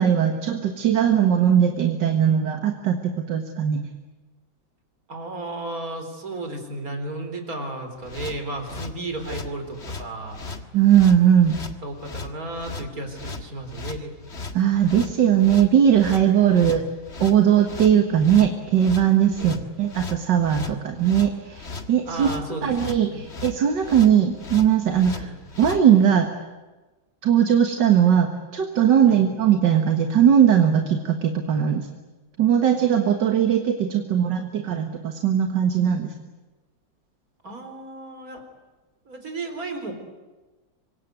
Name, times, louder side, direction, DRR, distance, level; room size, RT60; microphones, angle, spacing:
voice 1, 0.0-3.8 10.7-11.6 14.5-16.8 17.2-22.3 22.6-25.3 25.6-26.3 27.2-31.9 32.4-36.1, right 9 dB, 65° right, 5 dB, 2.2 m, -19 dB
voice 2, 5.1-10.4 11.8-14.1 19.4-19.6 22.1-23.2 25.1-25.4 29.0-29.2 37.4-38.4 39.1-39.9, right 2 dB, 45° right, 6 dB, 4.5 m, -34 dB
sound 1, 8.0-25.8, left 3 dB, 35° left, 1.9 m, -37 dB
26.0 x 24.0 x 9.4 m, 1.2 s
omnidirectional pair, 2.1 m